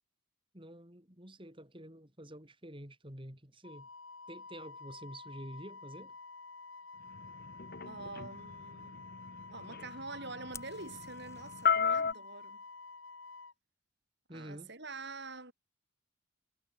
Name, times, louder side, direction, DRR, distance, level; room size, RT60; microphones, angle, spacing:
voice 1, 0.5-3.9 4.3-6.2 14.3-14.7, right 1 dB, 25° right, 5.2 m, -48 dB
Wind instrument woodwind instrument, 3.6-13.5, left 4 dB, 60° left, 7.4 m, -50 dB
sound 1, 7.1-12.1, left 6 dB, 45° left, 1.0 m, -34 dB
voice 2, 7.8-9.1 9.3-12.6 14.3-15.5, right 3 dB, 50° right, 7.2 m, -46 dB
Fire, 10.5-11.7, left 5 dB, 15° left, 7.7 m, -52 dB
head